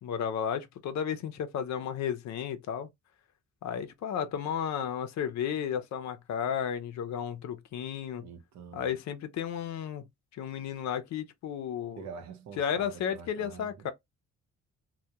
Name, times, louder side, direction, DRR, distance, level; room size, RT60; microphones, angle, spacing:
voice 1, 0.0-2.9 3.6-8.3 8.7-10.0 10.3-12.0 12.6-13.9, left 8 dB, 65° left, 0.5 m, -33 dB
voice 2, 8.2-8.9 12.0-13.9, right 6 dB, 65° right, 0.8 m, -46 dB
2.2 x 2.2 x 2.7 m
cardioid pair, 90°, 30 cm